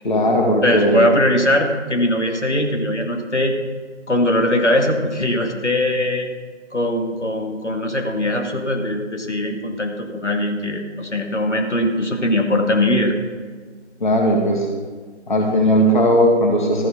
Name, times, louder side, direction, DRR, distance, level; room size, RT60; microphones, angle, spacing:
voice 1, 0.0-1.0 14.0-14.7 15.3-16.9, equal, 45° left, 0 dB, 1.9 m, -17 dB
voice 2, 0.6-3.5 4.1-6.3 6.7-13.1, left 1 dB, 80° left, 2 dB, 2.2 m, -20 dB
14.0 x 8.0 x 5.8 m, 1.5 s
figure-of-eight pair, 160°, 35 cm